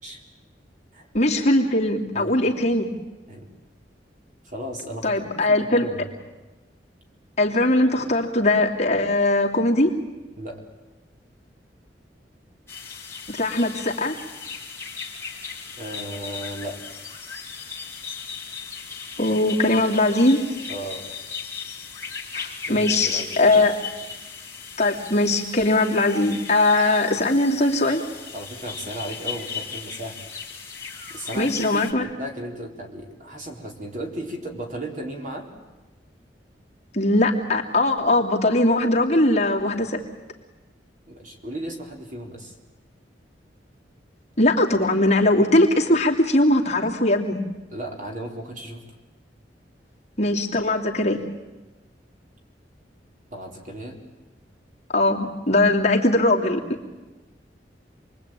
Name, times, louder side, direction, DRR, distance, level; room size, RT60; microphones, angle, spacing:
voice 1, 1.1-2.9 5.0-5.9 7.4-9.9 13.3-14.2 19.2-20.4 22.3-23.7 24.8-28.0 31.4-32.1 36.9-40.0 44.4-47.4 50.2-51.2 54.9-56.8, left 2 dB, 40° left, -1 dB, 2.8 m, -20 dB
voice 2, 4.4-6.1 10.4-10.6 15.8-16.8 20.7-21.1 22.7-23.6 28.3-30.2 31.1-35.5 41.1-42.5 47.7-48.8 53.3-54.0, right 1 dB, 45° right, 2 dB, 4.1 m, -35 dB
sound 1, 12.7-31.9, left 6 dB, 15° left, 3.4 m, -37 dB
28.0 x 22.0 x 9.1 m, 1.1 s
head